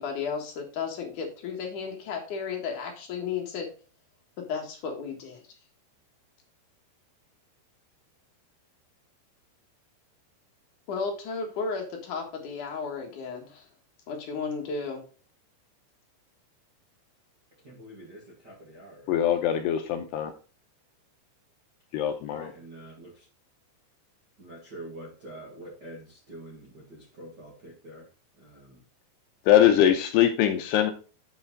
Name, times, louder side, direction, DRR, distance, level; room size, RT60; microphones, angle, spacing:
voice 1, 0.0-3.7 4.5-5.4 10.9-13.7 14.1-15.0, left 5 dB, 60° left, 2 dB, 2.4 m, -33 dB
voice 2, 17.6-19.6 22.3-23.3 24.4-28.1 28.4-28.8, right 1 dB, 55° right, -4 dB, 1.1 m, -46 dB
voice 3, 19.1-20.3 21.9-22.5 29.5-30.9, left 10 dB, 80° left, 6 dB, 2.5 m, -22 dB
8.5 x 5.7 x 3.9 m, 0.37 s
omnidirectional pair, 5.3 m